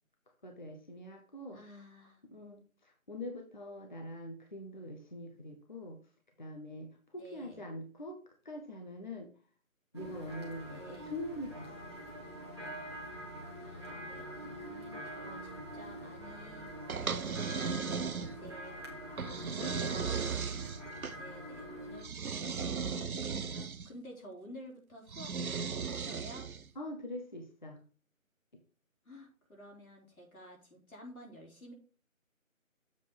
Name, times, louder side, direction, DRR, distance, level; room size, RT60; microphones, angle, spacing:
voice 1, 0.4-1.7 2.3-6.0 6.4-8.2 8.4-9.3 9.9-11.7 12.1-12.2 15.3-15.7 19.2-19.8 26.8-27.8, left 1 dB, 35° left, 3 dB, 0.9 m, -44 dB
voice 2, 1.5-2.2 7.2-7.6 10.7-11.1 13.6-17.4 17.7-19.0 19.5-20.4 21.2-26.5 29.1-31.7, equal, 85° left, -1 dB, 3.7 m, -52 dB
sound 1, 9.9-22.0, right 1 dB, 20° right, 1.1 m, -45 dB
sound 2, 16.9-18.6 19.2-21.2 22.0-23.9 25.1-26.7, right 5 dB, 90° right, 0.7 m, -36 dB
7.4 x 4.0 x 5.1 m, 0.39 s
figure-of-eight pair, 165°, 41 cm